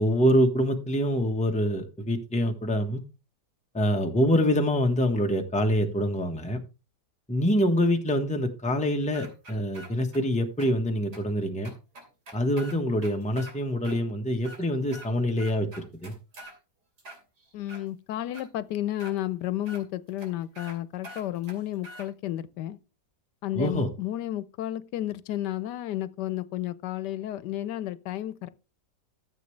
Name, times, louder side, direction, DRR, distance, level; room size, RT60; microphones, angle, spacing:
voice 1, 0.0-3.0 3.7-6.6 7.3-11.7 12.3-15.7 16.0-16.1 23.5-23.9, equal, 5° left, 1.0 m, -25 dB
sound 1, 9.1-10.2 10.6-10.7 11.1-11.2 11.6-13.5 13.8-14.0 14.3-15.1 15.4-16.6 17.0-17.8 18.3-18.5 19.0-19.1 19.7-19.8 20.2-20.3 20.6-20.8 21.0-22.1, right 1 dB, 75° right, 3.3 m, -45 dB
voice 2, 17.5-22.8 23.4-28.5, left 13 dB, 85° left, 1.3 m, -32 dB
13.5 x 7.5 x 3.2 m
omnidirectional pair, 1.8 m